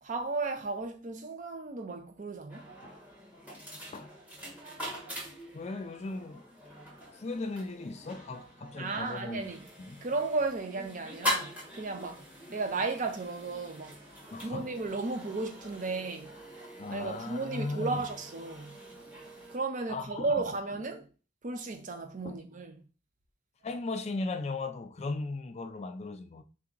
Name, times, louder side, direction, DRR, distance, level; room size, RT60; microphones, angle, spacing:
voice 1, 0.0-2.7 8.8-9.7 10.0-14.0 14.4-16.3 16.9-18.8 19.5-21.1 21.4-22.8, right 3 dB, 40° right, 0.6 m, -34 dB
sound 1, 2.5-19.6, left 1 dB, 10° right, 1.1 m, -42 dB
voice 2, 5.5-6.4 7.1-9.5 9.8-10.1 14.3-14.7 16.8-18.0 19.9-20.3 22.2-22.4 23.6-26.4, left 3 dB, 35° left, 0.4 m, -37 dB
3.5 x 2.8 x 3.7 m
head